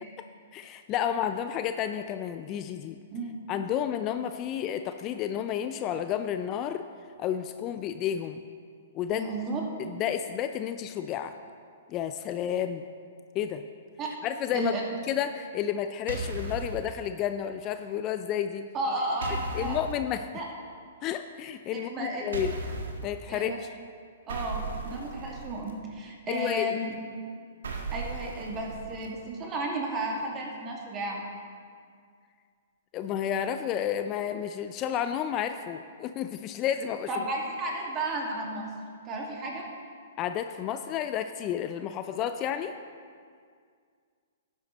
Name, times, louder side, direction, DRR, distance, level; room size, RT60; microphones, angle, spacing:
voice 1, 0.5-3.0 3.5-6.8 7.2-8.4 8.9-9.3 9.9-11.3 11.9-12.8 13.3-13.7 14.2-14.7 15.1-18.7 19.5-20.3 21.0-22.6 23.0-23.7 26.3-26.8 32.9-37.1 40.2-42.7, left 9 dB, 30° left, 9 dB, 0.4 m, -31 dB
voice 2, 9.1-9.6 14.0-14.1 14.5-14.8 18.7-19.8 20.3-20.5 21.7-22.2 23.3-23.6 24.3-26.9 27.9-31.3 37.1-38.7 39.0-39.6, right 1 dB, 25° right, -1 dB, 2.4 m, -33 dB
sound 1, 16.1-16.8 19.2-19.9 22.3-23.0 24.3-25.7 27.6-29.1, right 3 dB, 80° right, 1.6 m, -36 dB
12.5 x 10.0 x 4.2 m, 2.1 s
hypercardioid pair, 130°, 0 cm